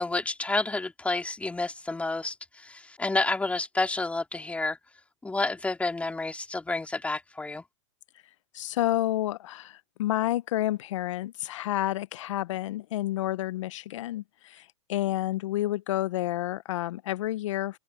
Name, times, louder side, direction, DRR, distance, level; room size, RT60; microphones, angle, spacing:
voice 1, 0.0-4.8 5.2-7.6, left 2 dB, 10° left, 2.3 m, -30 dB
voice 2, 8.5-17.8, left 14 dB, 70° left, 0.7 m, -30 dB
open air
hypercardioid pair, 115°, 16 cm